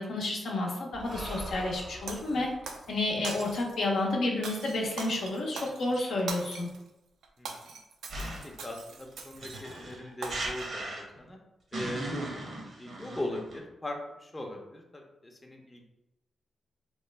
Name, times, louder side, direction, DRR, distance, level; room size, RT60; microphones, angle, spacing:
voice 1, 0.0-2.5 2.9-6.7, left 2 dB, 75° left, -2 dB, 0.6 m, -30 dB
Breathing, 0.9-4.5, right 1 dB, 35° right, 0.6 m, -44 dB
Shatter, 2.1-2.9 3.2-3.8 4.4-6.8 7.2-9.8 10.2-10.6, right 4 dB, 85° right, 0.3 m, -42 dB
voice 2, 7.4-7.7 8.4-11.4 11.7-12.3 12.8-15.8, left 1 dB, 25° left, 1 dB, 0.6 m, -40 dB
sound 1, 8.1-8.6 9.4-11.3 11.7-13.6, right 2 dB, 65° right, 0.8 m, -37 dB
3.0 x 2.1 x 3.2 m, 0.92 s
cardioid pair, 60°, 0 cm